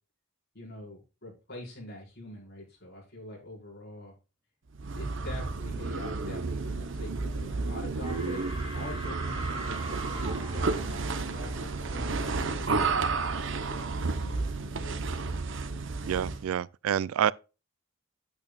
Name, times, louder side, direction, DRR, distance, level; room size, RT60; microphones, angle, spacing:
voice 1, 0.5-4.1 4.9-13.0 13.6-15.0, left 1 dB, 50° left, 4.8 m, -44 dB
sound 1, 4.7-16.5, right 3 dB, 60° right, 0.8 m, -32 dB
sound 2, 7.3-7.7 8.0-12.5, right 2 dB, 25° right, 2.6 m, -43 dB
voice 2, 16.1-17.3, right 9 dB, 80° right, 0.3 m, -28 dB
8.8 x 8.6 x 2.4 m
head